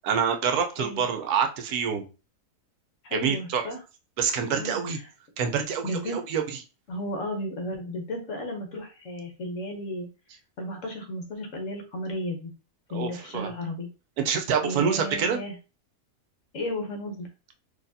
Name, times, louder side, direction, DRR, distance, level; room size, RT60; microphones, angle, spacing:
voice 1, 0.0-2.1 3.1-3.6 4.2-5.0 5.4-6.4 12.9-13.5 14.2-15.4, right 7 dB, 75° right, 5 dB, 1.1 m, -26 dB
voice 2, 3.0-3.8 4.5-5.1 5.8-6.2 6.9-10.1 10.6-12.5 12.9-13.9 14.6-15.6 16.5-17.3, left 1 dB, 60° left, 4 dB, 1.1 m, -34 dB
4.0 x 2.8 x 2.6 m, 0.32 s
omnidirectional pair, 1.7 m